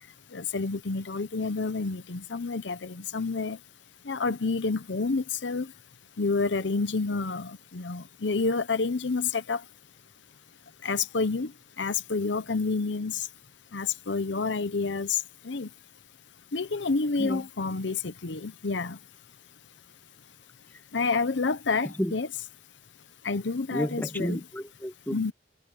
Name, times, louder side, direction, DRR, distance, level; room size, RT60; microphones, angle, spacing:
voice 1, 0.3-3.6 4.1-5.7 6.2-9.6 10.8-11.5 11.8-13.3 13.7-15.7 16.5-19.0 20.9-22.3 23.2-24.4 25.1-25.3, left 4 dB, 85° left, 0.8 m, -29 dB
voice 2, 23.7-25.3, equal, 10° left, 1.4 m, -31 dB
head